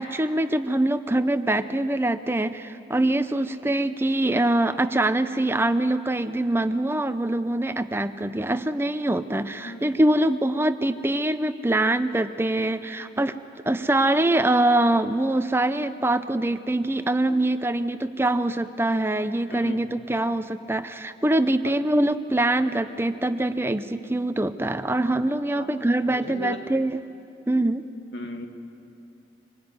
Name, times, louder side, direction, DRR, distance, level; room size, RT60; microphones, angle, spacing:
voice 1, 0.0-13.4 13.6-27.0 27.5-27.9, right 1 dB, 15° right, 11 dB, 0.6 m, -24 dB
voice 2, 19.5-19.8 21.6-21.8 25.5-25.7 26.1-26.7 28.1-28.5, left 2 dB, 85° left, 4 dB, 2.3 m, -36 dB
25.0 x 20.5 x 9.6 m, 2.6 s
head